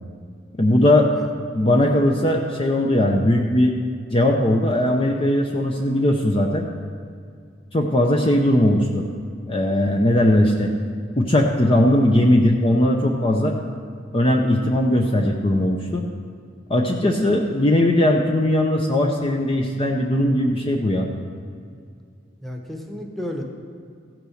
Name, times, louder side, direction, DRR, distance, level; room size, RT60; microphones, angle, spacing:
voice 1, 0.6-1.1 1.5-3.7 4.1-6.7 7.7-9.1 9.5-10.7 11.2-13.6 14.1-16.0 16.7-21.1, left 1 dB, 30° left, 1 dB, 0.7 m, -19 dB
voice 2, 22.4-23.4, equal, ahead, 1 dB, 1.1 m, -32 dB
15.0 x 6.1 x 6.4 m, 2.3 s
head